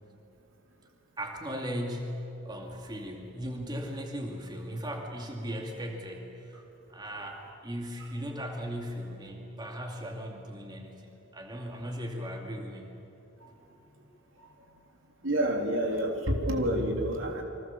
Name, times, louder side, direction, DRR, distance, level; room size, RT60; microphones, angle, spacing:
voice 1, 1.2-6.6 6.9-13.0, equal, 20° right, 1 dB, 2.5 m, -37 dB
voice 2, 15.2-17.4, right 1 dB, 75° right, 2 dB, 3.7 m, -28 dB
29.0 x 24.5 x 7.3 m, 2.9 s
head